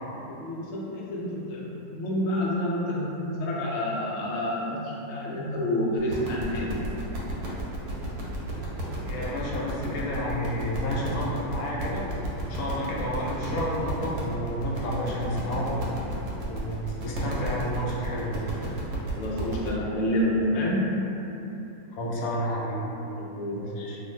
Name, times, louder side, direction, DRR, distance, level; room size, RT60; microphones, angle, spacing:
voice 1, 0.2-6.8 19.1-20.9 23.2-23.6 23.9-24.0, left 1 dB, 85° left, -4 dB, 0.6 m, -28 dB
sound 1, 6.0-19.7, right 1 dB, 75° right, 1.1 m, -33 dB
voice 2, 9.1-12.1 12.4-15.9 16.4-18.5 22.0-22.8 23.5-24.0, equal, 70° left, -4 dB, 0.9 m, -30 dB
2.5 x 2.4 x 3.1 m, 3.0 s
omnidirectional pair, 1.7 m